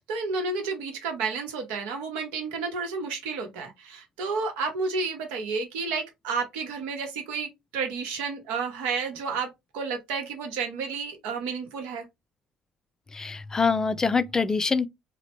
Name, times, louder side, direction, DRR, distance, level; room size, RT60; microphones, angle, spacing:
voice 1, 0.0-9.5 9.7-12.0, right 4 dB, 80° right, 0.8 m, -31 dB
voice 2, 13.1-14.9, left 4 dB, 25° left, 0.4 m, -24 dB
2.9 x 2.0 x 2.9 m
hypercardioid pair, 60°, 2 cm